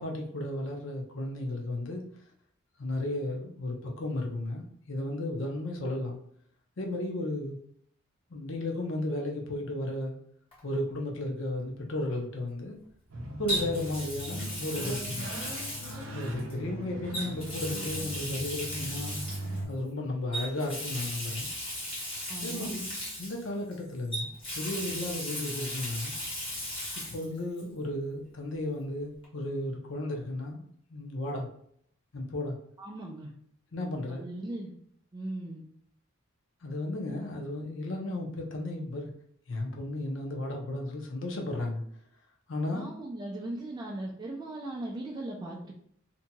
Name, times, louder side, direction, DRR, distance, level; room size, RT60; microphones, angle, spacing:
voice 1, 0.0-2.0 2.8-6.2 6.8-7.6 8.3-10.2 10.6-12.8 13.4-15.3 16.1-19.2 19.7-21.5 22.4-26.1 27.1-30.6 30.9-31.5 32.1-32.6 33.7-34.3 36.6-39.1 39.5-41.8 42.5-42.9, left 1 dB, 65° left, 1 dB, 0.6 m, -34 dB
Water tap faucet, 10.5-10.7 13.5-16.5 17.1-19.6 20.3-23.7 24.1-27.3 27.6-27.7 29.2-29.3, left 1 dB, 25° left, 1.1 m, -36 dB
sound 1, 13.1-19.6, right 1 dB, 65° right, 0.6 m, -39 dB
voice 2, 22.3-22.7 32.8-33.3 34.1-34.7 35.1-35.6 42.7-45.7, right 1 dB, 20° right, -2 dB, 0.3 m, -38 dB
2.8 x 2.7 x 2.2 m, 0.65 s
head